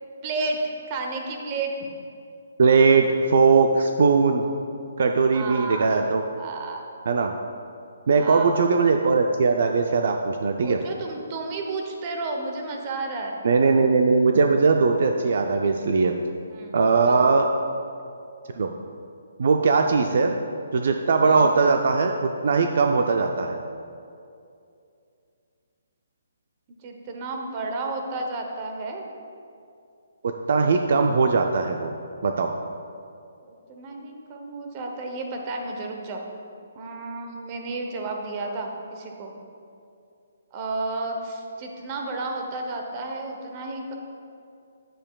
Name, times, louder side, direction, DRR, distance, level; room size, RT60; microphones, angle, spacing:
voice 1, 0.2-1.7 5.3-6.1 6.4-6.8 8.2-8.7 10.6-13.4 16.5-16.8 17.0-17.3 21.2-21.5 26.8-29.0 33.4-36.2 36.8-39.3 40.5-43.9, right 3 dB, 30° right, 2 dB, 0.8 m, -32 dB
voice 2, 2.6-4.5 5.0-6.2 7.1-7.3 8.1-10.8 13.4-16.1 16.7-17.5 18.6-18.7 19.4-20.4 20.7-23.6 30.2-31.9 32.2-32.5, right 4 dB, 60° right, 4 dB, 0.4 m, -20 dB
8.7 x 7.6 x 2.3 m, 2.5 s
hypercardioid pair, 160°, 0 cm